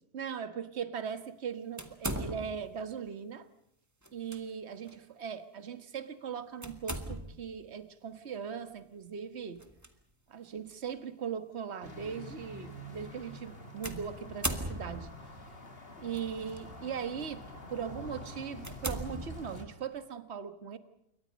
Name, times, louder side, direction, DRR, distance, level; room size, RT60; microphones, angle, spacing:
voice 1, 0.1-3.5 4.1-9.6 10.3-15.1 16.0-17.4 17.7-20.8, right 7 dB, 45° right, 11 dB, 1.7 m, -39 dB
sound 1, 1.8-2.8 4.0-4.4 4.9-5.0 6.6-7.5 9.6-9.9 10.7-10.8 13.8-15.2 16.1-16.6 17.2-17.4 17.9-18.0 18.6-19.8, right 1 dB, 10° right, 2.0 m, -38 dB
sound 2, 11.8-19.7, left 2 dB, 35° left, 3.3 m, -47 dB
28.0 x 24.0 x 5.3 m, 0.78 s
omnidirectional pair, 1.7 m